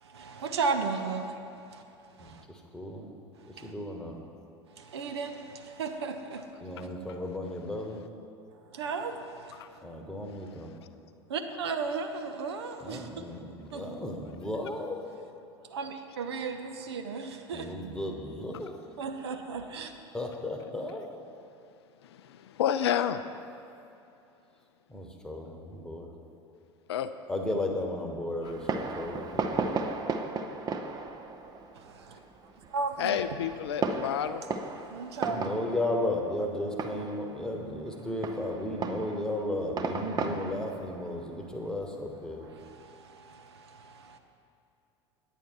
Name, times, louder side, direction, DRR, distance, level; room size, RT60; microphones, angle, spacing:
voice 1, 0.0-1.4 1.7-1.8 2.2-2.4 3.6-3.7 4.8-6.5 8.7-9.6 11.3-13.1 13.7-13.9 15.7-17.7 19.0-19.9 31.8-32.2 32.7-33.2 34.8-35.5 42.4-44.2, right 4 dB, 65° right, 7 dB, 0.7 m, -35 dB
voice 2, 2.7-3.1 3.6-4.2 6.6-8.0 9.8-10.7 12.8-15.0 17.5-18.7 20.1-21.1 24.9-26.1 27.3-29.6 35.2-42.4, left 1 dB, 5° left, 2 dB, 1.2 m, -34 dB
voice 3, 6.8-7.2 9.5-9.7 22.0-23.2 26.9-27.1 28.4-28.5 33.0-34.4, left 9 dB, 65° left, 11 dB, 0.4 m, -30 dB
Fireworks, 28.4-42.6, right 4 dB, 25° right, 0.6 m, -36 dB
9.0 x 9.0 x 4.7 m, 2.8 s
figure-of-eight pair, 75°, 15 cm